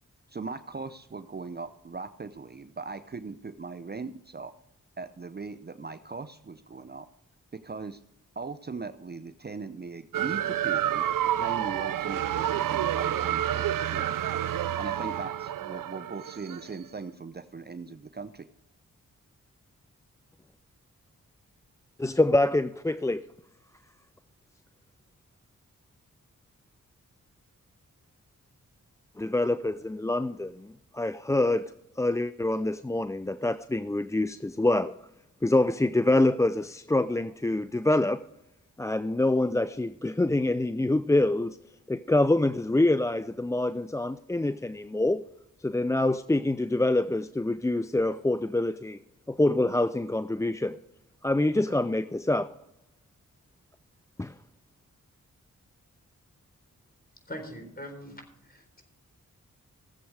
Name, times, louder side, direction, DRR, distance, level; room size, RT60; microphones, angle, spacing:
voice 1, 0.3-4.5 5.0-7.1 7.5-8.0 8.4-11.1 11.4-13.7 13.9-14.1 14.8-18.5, right 4 dB, 30° right, 0.7 m, -39 dB
sound 1, 10.1-16.7, right 11 dB, 75° right, 0.6 m, -29 dB
voice 2, 22.0-23.2 29.2-34.9 35.4-38.2 38.8-41.6 41.9-45.2 45.6-49.0 49.3-50.8 51.2-52.5 54.2-54.3, left 2 dB, 10° left, 0.4 m, -26 dB
voice 3, 57.3-58.8, equal, 30° left, 4.1 m, -42 dB
16.5 x 7.7 x 4.8 m
cardioid pair, 40°, 33 cm